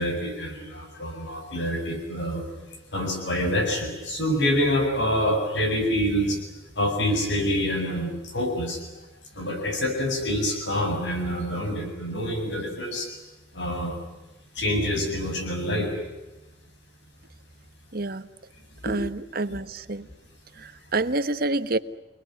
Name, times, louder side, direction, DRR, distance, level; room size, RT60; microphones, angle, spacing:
voice 1, 0.0-2.4 2.9-6.4 6.8-8.8 9.3-13.1 13.5-14.0 14.6-15.9 18.9-19.0, equal, 70° left, 4 dB, 7.9 m, -26 dB
voice 2, 17.9-18.3 18.8-20.1 20.6-21.8, right 2 dB, 55° right, 12 dB, 1.2 m, -28 dB
29.0 x 20.5 x 9.6 m, 1.1 s
head